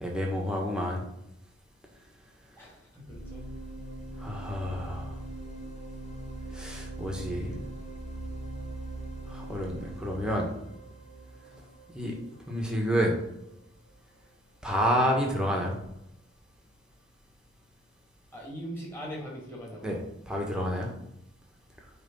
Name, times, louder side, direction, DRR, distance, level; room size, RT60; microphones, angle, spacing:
voice 1, 0.0-1.0 4.2-5.2 6.5-7.5 9.3-10.5 11.9-12.1 12.5-13.1 14.6-15.7 19.8-20.0 20.3-20.9, equal, 5° right, -1 dB, 1.5 m, -29 dB
voice 2, 2.6-3.4 18.3-20.0, equal, 10° left, -4 dB, 2.6 m, -40 dB
sound 1, 3.1-12.9, right 1 dB, 35° left, 1.1 m, -41 dB
9.3 x 3.5 x 5.5 m, 0.83 s
head